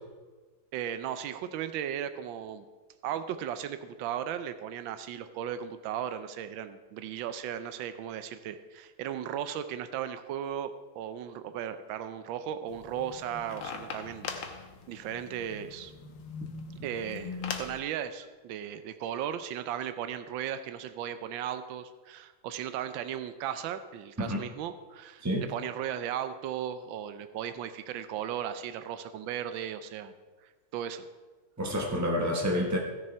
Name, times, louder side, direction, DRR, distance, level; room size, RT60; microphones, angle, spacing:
voice 1, 0.7-2.7 3.0-15.9 16.8-25.2 25.5-30.1 30.4-31.1, right 9 dB, 85° right, 11 dB, 1.4 m, -36 dB
sound 1, 12.7-17.8, left 5 dB, 75° left, 1.6 m, -41 dB
voice 2, 31.6-32.8, equal, 20° right, 0 dB, 0.5 m, -28 dB
15.5 x 6.7 x 4.5 m, 1.3 s
omnidirectional pair, 2.1 m